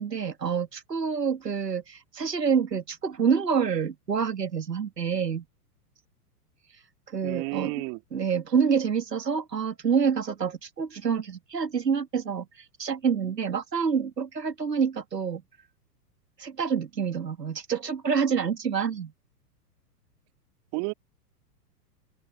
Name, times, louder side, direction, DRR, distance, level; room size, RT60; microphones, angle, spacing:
voice 1, 0.0-5.5 7.1-7.8 8.1-15.4 16.4-19.1, right 6 dB, 85° right, 1.9 m, -27 dB
voice 2, 7.2-8.0 20.7-20.9, right 37 dB, 40° right, 2.3 m, -31 dB
open air
figure-of-eight pair, 105°, 47 cm